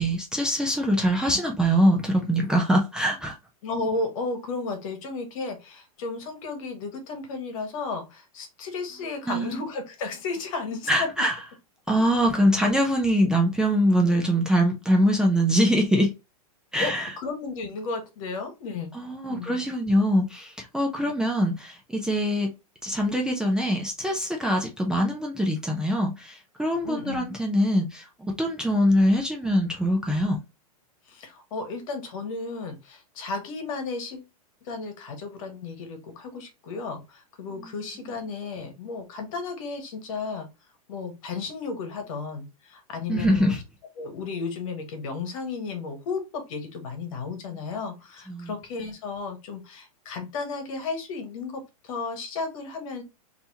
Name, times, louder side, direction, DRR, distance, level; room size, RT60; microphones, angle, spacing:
voice 1, 0.0-3.3 9.3-9.5 10.9-11.4 11.9-16.1 16.7-17.1 18.9-22.5 22.8-30.4 43.1-43.6 48.3-48.5, equal, 5° right, 0.6 m, -23 dB
voice 2, 3.6-11.1 16.8-18.9 19.3-19.6 21.0-21.1 26.8-27.3 31.1-34.2 34.6-40.5 40.9-43.6 44.0-53.0, left 4 dB, 60° left, 1.4 m, -33 dB
3.4 x 2.9 x 2.8 m
hypercardioid pair, 135°, 19 cm